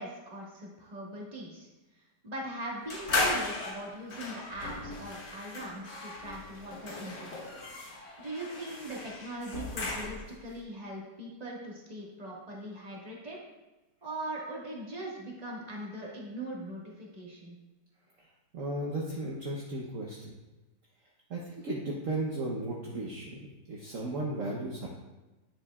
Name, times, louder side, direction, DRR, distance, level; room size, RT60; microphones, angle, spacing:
voice 1, 0.0-1.7 2.2-7.3 8.2-13.4 14.0-17.6, right 1 dB, 25° right, -4 dB, 1.7 m, -40 dB
sound 1, 2.9-10.4, left 2 dB, 80° left, 1.9 m, -36 dB
voice 2, 18.5-20.3 21.3-23.4 23.7-24.9, right 2 dB, 55° right, -3 dB, 1.2 m, -35 dB
9.9 x 7.2 x 2.4 m, 1.1 s
omnidirectional pair, 1.8 m